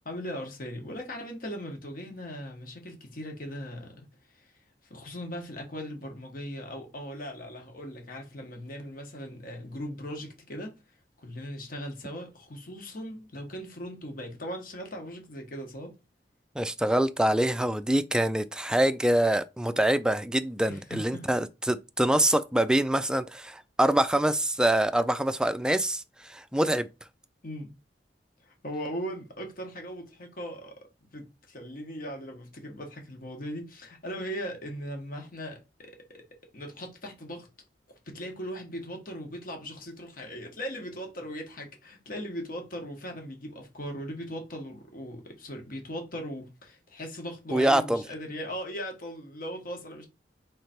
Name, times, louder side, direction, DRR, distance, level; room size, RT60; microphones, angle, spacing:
voice 1, 0.0-4.1 4.3-4.5 4.9-10.7 11.2-15.9 20.7-21.2 27.4-27.7 28.4-30.8 31.1-36.2 36.5-37.5 38.1-50.1, equal, 50° left, 1.3 m, -39 dB
voice 2, 16.6-26.9 47.5-48.0, right 1 dB, 5° right, 0.3 m, -25 dB
3.8 x 3.2 x 4.3 m
head